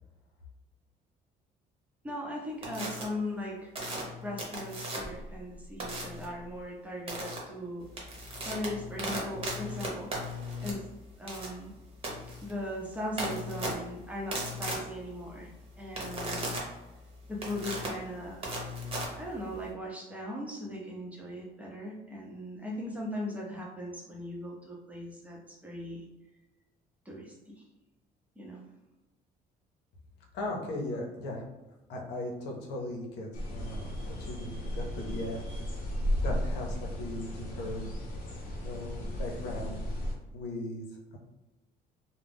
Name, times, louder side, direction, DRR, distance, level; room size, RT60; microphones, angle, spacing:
voice 1, 2.0-3.7 4.2-7.9 8.4-10.1 10.6-10.9 11.2-11.7 12.4-15.5 15.8-16.7 17.3-18.4 19.2-26.0 27.1-27.5 28.4-28.6, left 1 dB, 10° right, -3 dB, 0.7 m, -39 dB
sound 1, 2.6-3.0 3.7-5.2 5.8-6.3 7.1-7.4 7.8-19.7, equal, 35° right, 0.9 m, -37 dB
voice 2, 30.3-31.4 31.9-35.4 36.2-38.0 38.3-39.8 40.3-40.8 41.1-41.2, left 1 dB, 85° left, 0 dB, 0.7 m, -38 dB
sound 2, 33.3-40.1, equal, 55° left, 0.9 m, -35 dB
2.4 x 2.1 x 3.4 m, 1.0 s
cardioid pair, 110°, 17 cm